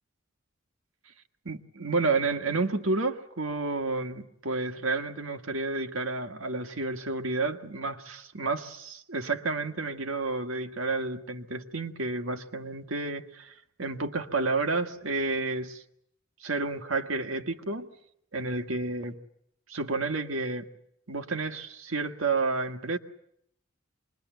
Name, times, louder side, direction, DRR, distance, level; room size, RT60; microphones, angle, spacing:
voice 1, 1.4-13.5 13.8-15.8 16.4-17.9 18.3-19.1 19.7-20.7 21.1-23.0, right 3 dB, 80° right, 1.7 m, -30 dB
26.0 x 22.0 x 9.2 m
head